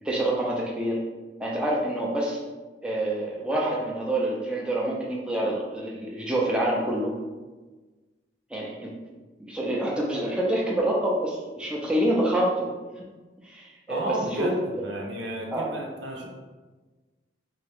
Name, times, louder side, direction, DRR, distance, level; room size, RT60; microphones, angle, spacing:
voice 1, 0.0-1.0 1.4-2.4 2.8-7.1 8.5-9.0 9.4-12.7 13.4-14.5 15.5-15.7, right 1 dB, 5° right, -4 dB, 0.5 m, -27 dB
voice 2, 13.9-16.3, right 1 dB, 80° right, 0 dB, 0.8 m, -32 dB
3.5 x 2.9 x 3.5 m, 1.3 s
head